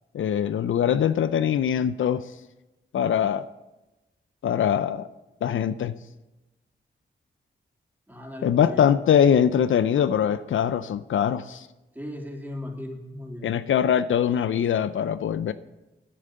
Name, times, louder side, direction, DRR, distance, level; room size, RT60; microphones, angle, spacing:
voice 1, 0.1-2.3 2.9-3.5 4.4-5.1 5.4-5.9 8.4-11.7 13.4-15.5, left 9 dB, 80° left, 13 dB, 0.5 m, -22 dB
voice 2, 8.1-8.9 11.9-13.5, left 1 dB, 10° right, 0 dB, 3.1 m, -37 dB
10.0 x 9.1 x 6.7 m, 1.0 s
cardioid pair, 45°, 20 cm